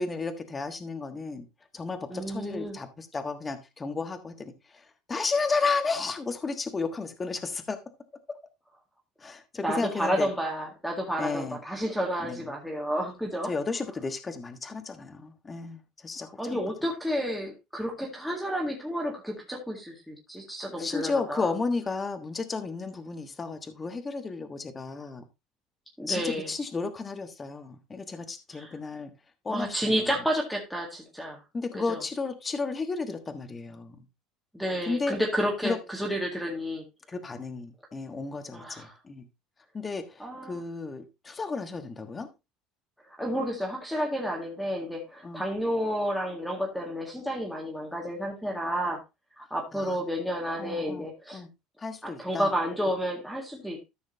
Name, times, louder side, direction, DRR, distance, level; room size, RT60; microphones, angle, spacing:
voice 1, 0.0-1.5 1.7-7.8 9.2-10.3 11.2-11.6 12.2-12.5 13.4-16.6 20.6-25.2 26.1-29.1 29.4-30.1 31.5-34.0 34.8-35.2 35.6-35.8 37.1-39.3 39.7-42.3 45.2-45.4 49.7-50.0 50.6-51.1 51.3-51.5 51.8-52.5, left 4 dB, 20° left, 1.3 m, -33 dB
voice 2, 2.1-2.8 9.6-13.5 16.4-21.5 26.0-26.5 28.5-28.7 29.5-31.4 31.7-32.0 34.5-36.8 38.5-38.9 40.2-40.6 43.2-49.0 49.4-51.4 52.0-53.9, equal, ahead, 1.9 m, -31 dB
13.5 x 6.4 x 2.7 m
cardioid pair, 130°, 0 cm